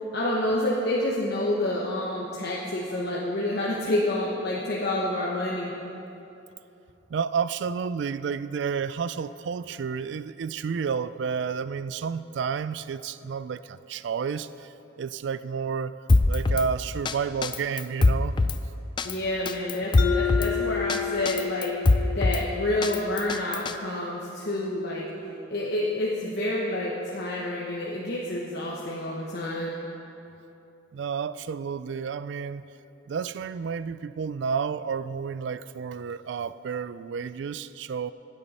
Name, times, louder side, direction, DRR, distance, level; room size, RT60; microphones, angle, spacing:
voice 1, 0.1-5.7 19.0-21.8 22.1-25.1 25.5-29.8, left 1 dB, 55° left, -4 dB, 1.0 m, -28 dB
voice 2, 7.1-16.0 16.3-18.4 30.9-32.6 33.1-38.1, right 6 dB, 60° right, 15 dB, 0.3 m, -31 dB
Drum kit, 16.1-16.7 17.1-17.2 17.4-18.6 19.0-19.1 19.5-20.5 20.9-21.0 21.3-22.4 22.8-23.7, left 3 dB, 25° left, 0.3 m, -22 dB
Mallet percussion, 20.0-24.5, left 9 dB, 75° left, 0.7 m, -32 dB
16.0 x 8.3 x 4.2 m, 2.9 s
head